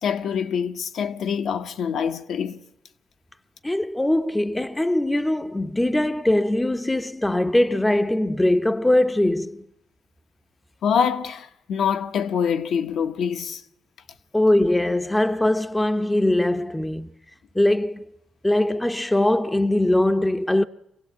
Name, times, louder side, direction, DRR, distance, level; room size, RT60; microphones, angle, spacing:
voice 1, 0.0-2.6 10.8-13.6, left 7 dB, 70° left, 1.1 m, -25 dB
voice 2, 3.6-9.7 14.3-17.1 17.5-18.1 18.4-20.6, left 1 dB, 10° left, 0.8 m, -21 dB
24.5 x 16.0 x 8.5 m
cardioid pair, 90°, 0 cm